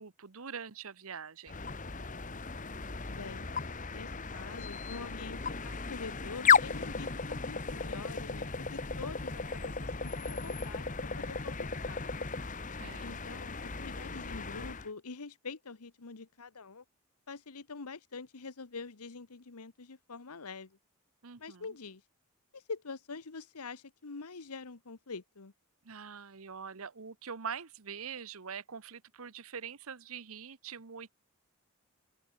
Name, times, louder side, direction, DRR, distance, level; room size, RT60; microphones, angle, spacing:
voice 1, 0.0-1.6 12.8-13.2 21.2-21.7 25.8-31.1, right 6 dB, 70° right, 1.0 m, -44 dB
sound 1, 1.5-14.9, left 5 dB, 35° left, 1.3 m, -34 dB
voice 2, 3.1-3.5 3.9-12.0 13.0-16.8 17.3-20.8 21.4-22.0 22.5-25.5, left 4 dB, 90° left, 1.2 m, -45 dB
open air
head